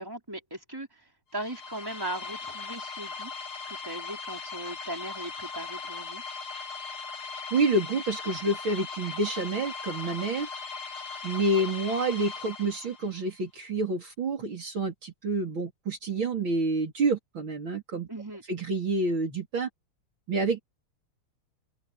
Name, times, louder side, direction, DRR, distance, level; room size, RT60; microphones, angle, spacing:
voice 1, 0.0-3.3 3.7-6.2 18.1-18.4, right 1 dB, 10° right, 4.2 m, -38 dB
sound 1, 1.3-13.2, left 4 dB, 85° left, 2.8 m, -39 dB
voice 2, 7.5-10.5 11.2-18.1 18.5-19.7 20.3-20.6, right 2 dB, 70° right, 4.7 m, -28 dB
open air
omnidirectional pair, 2.3 m